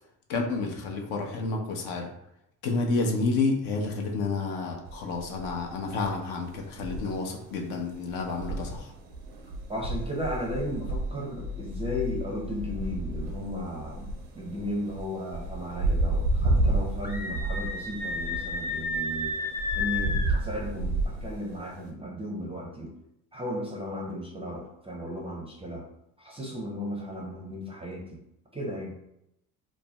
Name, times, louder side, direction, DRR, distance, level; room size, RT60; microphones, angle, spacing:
voice 1, 0.3-2.1 2.6-8.9, left 3 dB, 60° left, 1 dB, 0.7 m, -30 dB
sound 1, 4.9-21.9, right 2 dB, 85° right, 0.6 m, -32 dB
voice 2, 9.7-19.4 19.7-22.9 23.3-25.9 26.2-28.2 28.5-29.0, equal, 15° right, -2 dB, 0.5 m, -35 dB
sound 2, 11.3-14.2, left 12 dB, 75° left, 1.3 m, -39 dB
Screaming, 17.0-20.4, left 3 dB, 20° left, 0.7 m, -32 dB
2.5 x 2.0 x 3.3 m, 0.81 s
hypercardioid pair, 55°, 45 cm